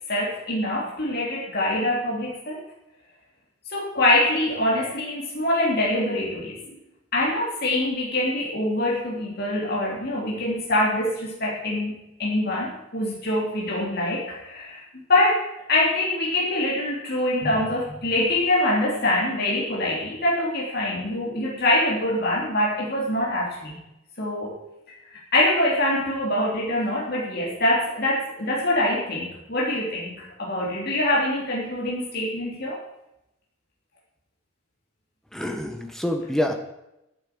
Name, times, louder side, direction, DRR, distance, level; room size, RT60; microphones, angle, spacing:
voice 1, 0.1-2.6 3.7-6.7 7.1-14.8 15.1-23.8 24.2-24.5 25.1-32.8, left 1 dB, 50° left, -4 dB, 3.4 m, -24 dB
voice 2, 35.3-36.5, left 1 dB, ahead, 3 dB, 1.5 m, -26 dB
9.5 x 9.1 x 8.8 m, 0.89 s
head